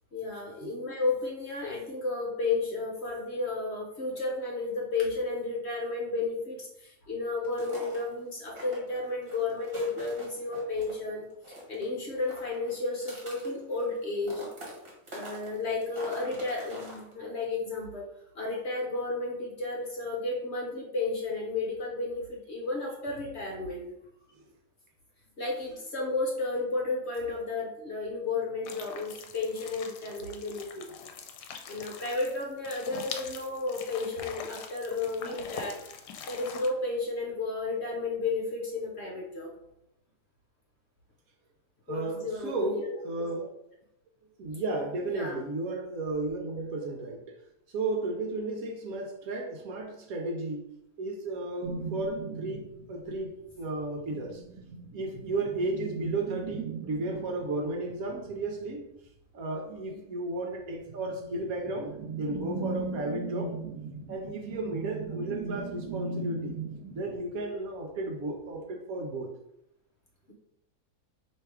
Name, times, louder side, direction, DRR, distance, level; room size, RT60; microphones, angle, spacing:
voice 1, 0.1-14.5 15.1-18.1 18.3-23.9 25.4-30.9 31.7-35.8 36.3-39.5 41.9-42.9 43.2-43.3 45.1-45.4 59.9-60.0, left 3 dB, 50° left, -1 dB, 1.0 m, -33 dB
sound 1, 7.4-8.1 8.5-11.0 11.3-11.9 12.1-14.0 14.2-17.1, right 1 dB, 40° right, 1.3 m, -45 dB
sound 2, 28.6-36.7, left 7 dB, 80° left, 1.1 m, -43 dB
voice 2, 41.9-43.5 44.4-47.4 47.7-50.6 51.0-54.4 54.9-58.8 59.3-63.6 64.1-66.6 66.9-69.3, right 2 dB, 65° right, 3 dB, 1.0 m, -34 dB
sound 3, 51.6-53.4 53.9-58.7 60.8-67.4, right 4 dB, 90° right, 1.2 m, -39 dB
3.4 x 2.9 x 4.7 m, 0.81 s
omnidirectional pair, 1.7 m